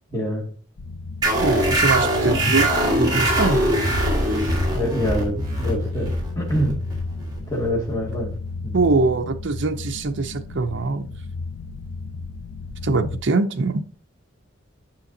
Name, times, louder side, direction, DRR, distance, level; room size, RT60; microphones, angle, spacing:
voice 1, 0.1-0.5 4.7-6.8 7.5-8.3 8.6-8.7, equal, 15° left, -3 dB, 2.2 m, -25 dB
sound 1, 0.8-13.2, left 3 dB, 70° left, 0.5 m, -33 dB
sound 2, 1.2-8.3, right 1 dB, 20° right, 1.7 m, -22 dB
voice 2, 1.4-3.6 8.7-11.1 12.8-13.8, right 3 dB, 60° right, 6 dB, 0.6 m, -23 dB
8.5 x 5.7 x 2.7 m, 0.40 s
head